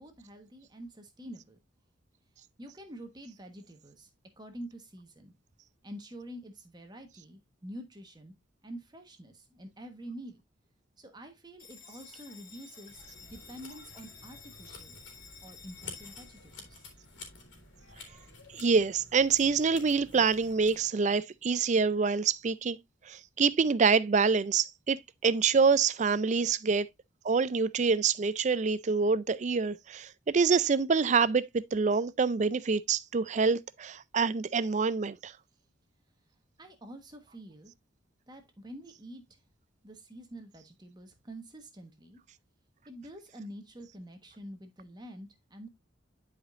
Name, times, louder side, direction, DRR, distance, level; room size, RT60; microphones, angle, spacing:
voice 1, 0.0-1.6 2.6-4.1 4.4-5.3 5.8-8.3 8.6-10.4 11.0-14.9 15.4-16.8 36.6-37.7 38.3-39.4 39.8-42.2 42.8-45.7, right 1 dB, 20° right, 1.2 m, -47 dB
Bell, 11.6-18.6, left 6 dB, 90° left, 2.5 m, -53 dB
sound 1, 12.9-20.8, left 3 dB, 70° left, 2.9 m, -51 dB
voice 2, 18.5-22.8 23.1-26.9 27.2-35.3, right 5 dB, 40° right, 0.4 m, -26 dB
11.0 x 5.0 x 2.5 m
head